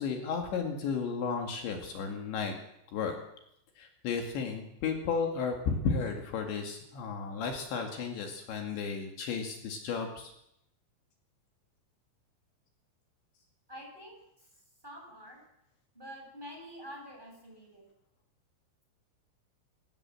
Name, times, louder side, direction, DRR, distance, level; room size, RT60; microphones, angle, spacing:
voice 1, 0.0-2.5 2.9-3.2 3.8-10.3, left 5 dB, 65° left, 3 dB, 4.3 m, -33 dB
voice 2, 13.7-14.2 14.8-15.4 15.9-17.9, equal, 10° right, 0 dB, 6.9 m, -47 dB
24.0 x 17.0 x 7.7 m, 0.77 s
omnidirectional pair, 5.7 m